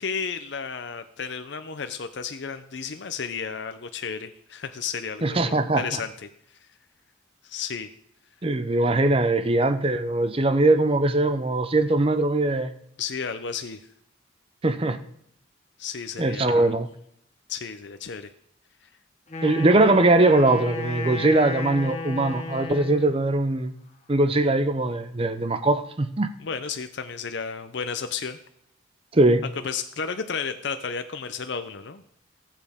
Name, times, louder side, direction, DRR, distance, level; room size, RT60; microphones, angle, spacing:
voice 1, 0.0-6.7 7.4-7.9 13.0-13.8 15.8-16.8 17.5-18.3 26.4-28.4 29.6-32.0, left 6 dB, 60° left, 8 dB, 0.6 m, -33 dB
voice 2, 5.2-5.8 8.4-12.7 14.6-15.0 16.2-16.9 19.4-23.7 24.1-26.3 29.1-29.4, right 2 dB, 30° right, 10 dB, 0.6 m, -21 dB
Wind instrument woodwind instrument, 19.3-23.3, left 3 dB, 35° left, 1.3 m, -34 dB
18.5 x 7.5 x 3.6 m, 0.71 s
head